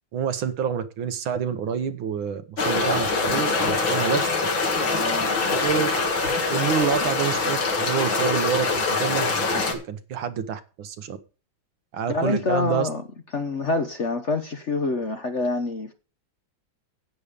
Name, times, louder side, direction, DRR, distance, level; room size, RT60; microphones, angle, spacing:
voice 1, 0.1-4.3 5.5-9.5 9.7-11.2 11.9-12.9, right 7 dB, 75° right, 11 dB, 1.8 m, -28 dB
sound 1, 2.6-9.7, left 3 dB, 70° left, 2.8 m, -24 dB
voice 2, 4.8-5.5 12.1-13.0 13.3-15.9, left 3 dB, 45° left, 7 dB, 1.0 m, -26 dB
11.0 x 8.6 x 5.1 m, 0.35 s
omnidirectional pair, 2.2 m